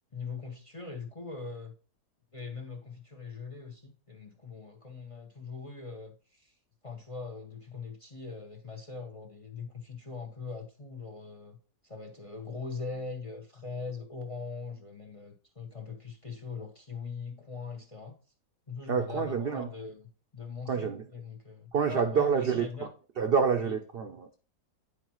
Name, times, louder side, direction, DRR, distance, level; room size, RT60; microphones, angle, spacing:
voice 1, 0.1-1.7 2.3-6.5 6.8-11.6 11.8-18.2 18.7-22.9 23.6-23.8, left 4 dB, 30° left, 0.6 m, -41 dB
voice 2, 18.9-19.7 20.7-21.0 21.7-22.7 23.2-24.4, right 6 dB, 80° right, 0.5 m, -27 dB
9.8 x 4.6 x 3.0 m
omnidirectional pair, 1.7 m